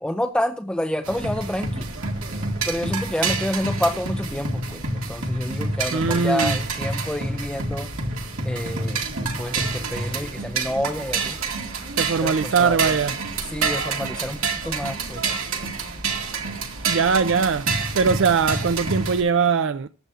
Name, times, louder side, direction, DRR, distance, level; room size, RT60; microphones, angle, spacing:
voice 1, 0.0-1.9 2.7-7.9 8.4-11.4 12.2-13.0 13.5-15.2, left 1 dB, 5° left, 0.5 m, -28 dB
sound 1, 1.0-19.2, right 3 dB, 85° right, 2.0 m, -28 dB
voice 2, 5.9-6.6 12.0-13.2 16.9-19.9, right 5 dB, 65° right, 0.4 m, -21 dB
14.5 x 9.1 x 2.5 m
head